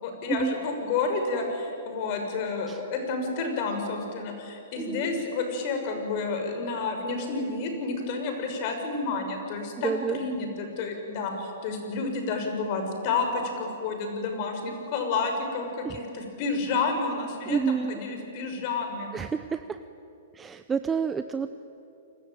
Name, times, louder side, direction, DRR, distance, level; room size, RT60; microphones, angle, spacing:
voice 1, 0.0-19.1, left 4 dB, 45° left, 5 dB, 6.3 m, -30 dB
voice 2, 4.8-5.1 9.8-10.2 15.8-16.0 17.5-18.0 19.1-19.8 20.3-21.6, right 6 dB, 15° right, 10 dB, 0.8 m, -29 dB
29.0 x 21.0 x 9.2 m, 3.0 s
hypercardioid pair, 120°, 0 cm